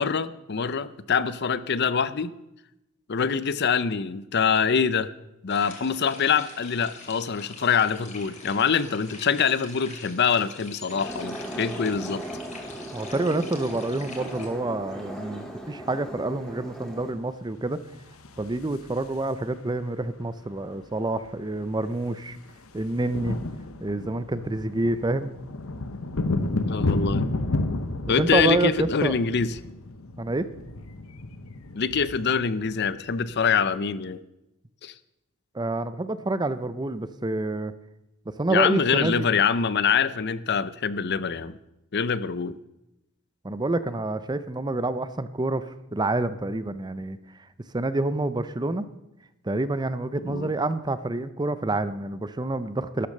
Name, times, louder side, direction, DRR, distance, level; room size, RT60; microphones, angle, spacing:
voice 1, 0.0-2.3 3.1-5.1 5.4-12.2 26.7-27.3 28.1-29.6 31.7-34.2 34.8-34.9 38.5-41.6 41.9-42.6 50.2-50.5, left 6 dB, 55° left, 15 dB, 0.6 m, -24 dB
sound 1, 5.5-14.5, left 4 dB, 35° left, 2.9 m, -44 dB
sound 2, 10.9-17.1, right 1 dB, 5° left, 2.5 m, -37 dB
voice 2, 12.9-17.8 18.4-22.4 22.7-23.4 23.8-25.3 28.2-29.1 30.2-30.5 35.5-37.7 38.4-39.3 43.4-47.2 47.7-48.9 49.4-53.1, right 2 dB, 20° right, 13 dB, 0.6 m, -27 dB
sound 3, 17.9-19.5 20.8-20.9 21.1-21.3 21.6-33.7, left 2 dB, 85° left, 1.0 m, -32 dB
12.5 x 12.0 x 6.6 m, 0.89 s
head